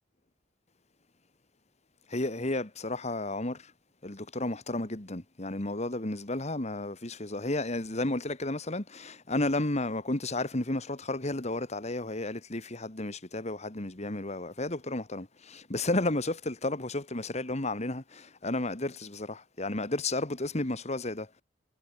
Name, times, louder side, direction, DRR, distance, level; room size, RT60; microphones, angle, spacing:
voice 1, 2.1-3.7 4.0-21.3, left 2 dB, 35° left, 2.0 m, -32 dB
head